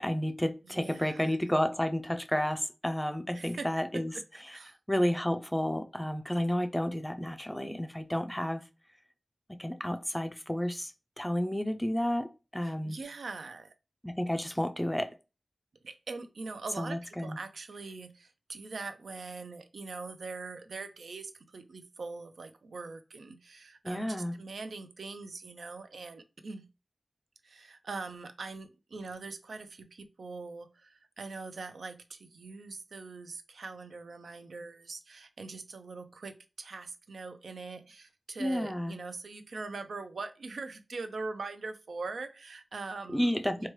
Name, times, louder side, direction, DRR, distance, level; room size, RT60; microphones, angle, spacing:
voice 1, 0.0-4.1 4.9-8.6 9.5-10.9 11.2-13.0 14.0-15.2 16.8-17.4 23.8-24.3 38.4-38.9 43.1-43.7, equal, 10° left, 0.3 m, -31 dB
voice 2, 0.6-1.4 3.3-3.7 4.5-4.7 12.6-13.7 15.8-26.7 27.4-43.3 43.6-43.7, right 3 dB, 90° right, 0.4 m, -42 dB
3.0 x 2.2 x 3.0 m
wide cardioid pair, 95°, 0 cm